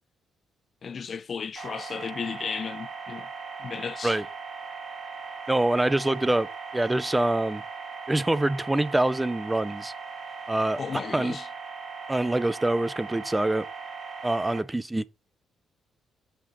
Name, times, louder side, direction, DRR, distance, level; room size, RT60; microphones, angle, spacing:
voice 1, 0.8-3.3 3.6-4.2 10.8-11.5, left 6 dB, 45° left, 0.3 m, -34 dB
sound 1, 1.6-14.6, right 5 dB, 55° right, 2.7 m, -39 dB
voice 2, 5.5-7.6 8.1-9.9 10.5-11.4 12.1-13.7 14.2-15.0, right 1 dB, 10° right, 0.5 m, -25 dB
5.9 x 5.7 x 5.1 m
cardioid pair, 90°, 0 cm